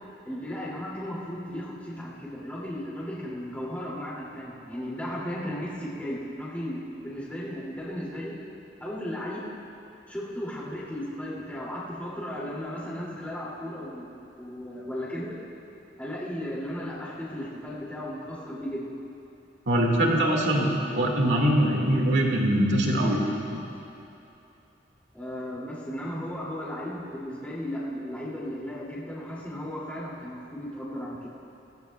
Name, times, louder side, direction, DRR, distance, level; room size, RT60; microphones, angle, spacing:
voice 1, 0.3-8.3 8.8-9.5 10.1-14.1 14.4-15.4 16.0-18.9 25.1-31.3, equal, 10° left, -8 dB, 2.5 m, -35 dB
voice 2, 19.7-23.2 23.5-23.6, right 1 dB, 85° right, -1 dB, 1.9 m, -23 dB
21.0 x 17.0 x 2.3 m, 2.9 s
head